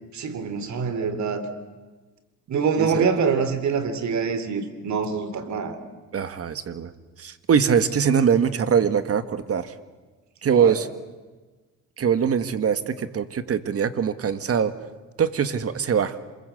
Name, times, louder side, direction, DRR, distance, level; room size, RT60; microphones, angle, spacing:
voice 1, 0.1-1.4 2.5-5.8 10.6-10.7, right 5 dB, 65° right, 10 dB, 3.3 m, -25 dB
voice 2, 6.1-6.9 7.2-9.7 10.4-10.9 12.0-14.7 15.2-16.2, right 7 dB, 50° right, 11 dB, 1.7 m, -22 dB
27.5 x 21.5 x 8.1 m, 1.3 s
cardioid pair, 90°, 30 cm